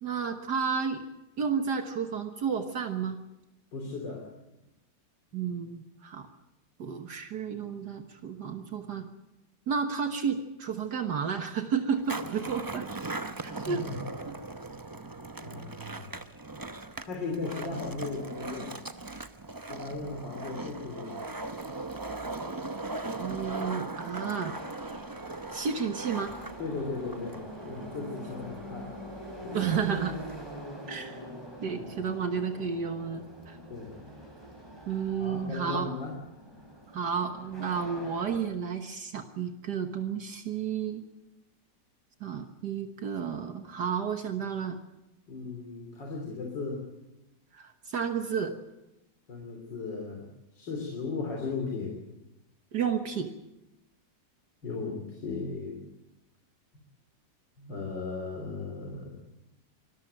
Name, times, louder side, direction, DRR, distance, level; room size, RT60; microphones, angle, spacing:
voice 1, 0.0-1.1 1.4-3.2 5.3-6.3 6.8-9.1 9.7-12.9 13.4-13.8 23.2-24.5 25.5-26.3 29.5-30.1 30.9-31.2 31.6-33.6 34.9-35.9 36.9-41.0 42.2-44.8 47.5-48.5 52.7-53.3, right 6 dB, 65° right, 6 dB, 1.8 m, -31 dB
voice 2, 3.7-4.3 5.3-5.4 13.4-13.9 14.3-14.4 15.4-16.1 17.0-18.8 19.6-21.2 26.6-29.0 29.4-29.7 31.8-32.0 33.7-34.0 35.2-36.2 45.3-46.8 49.3-52.0 54.6-55.8 57.6-59.1, left 4 dB, 80° left, 0 dB, 4.0 m, -37 dB
Skateboard, 11.9-30.6, right 2 dB, 30° right, 0.4 m, -39 dB
Subway metro underground, 21.3-38.4, right 1 dB, 15° right, 4.4 m, -45 dB
24.5 x 14.0 x 9.1 m, 0.94 s
omnidirectional pair, 1.9 m